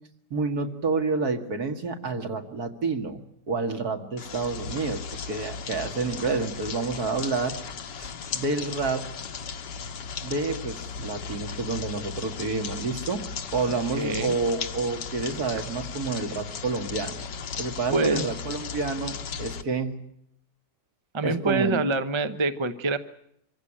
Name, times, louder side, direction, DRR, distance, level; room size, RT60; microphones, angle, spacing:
voice 1, 0.3-7.6 8.0-9.1 10.2-13.2 13.5-17.2 17.6-20.0 21.2-21.8, right 4 dB, 60° right, 5 dB, 2.5 m, -29 dB
sound 1, 4.2-19.6, left 6 dB, 75° left, 1.8 m, -36 dB
voice 2, 13.7-14.4 17.9-18.3 21.1-23.0, right 3 dB, 20° right, 10 dB, 0.8 m, -26 dB
25.0 x 15.5 x 9.9 m, 0.73 s
omnidirectional pair, 1.9 m